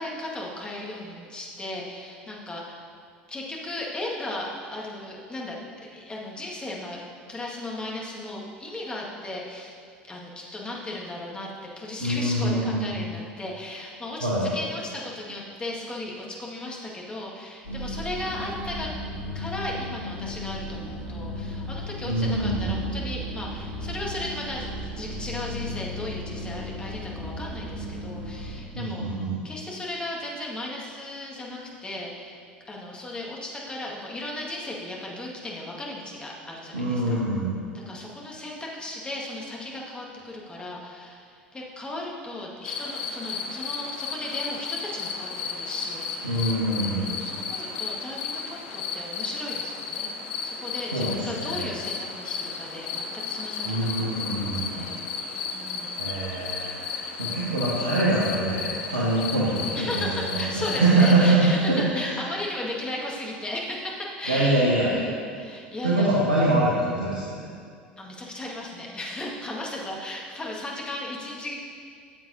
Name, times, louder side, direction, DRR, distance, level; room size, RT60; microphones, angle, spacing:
voice 1, 0.0-2.9 3.3-9.7 10.1-11.5 11.8-18.9 19.3-29.2 29.4-32.4 32.7-37.2 37.7-46.6 47.1-50.1 50.4-56.1 59.7-66.2 68.0-71.6, left 1 dB, 15° left, -3 dB, 1.8 m, -36 dB
voice 2, 12.0-12.9 14.2-14.4 22.1-22.7 28.7-29.3 36.7-37.6 46.2-47.1 50.9-51.7 53.6-54.8 56.0-62.2 64.3-65.0 65.8-67.4, right 2 dB, 80° right, -6 dB, 1.3 m, -24 dB
sound 1, 17.6-28.5, equal, 85° left, 1.5 m, -35 dB
sound 2, 42.6-61.3, left 5 dB, 60° left, 0.8 m, -34 dB
13.0 x 7.7 x 2.7 m, 2.2 s
figure-of-eight pair, 70°, 5 cm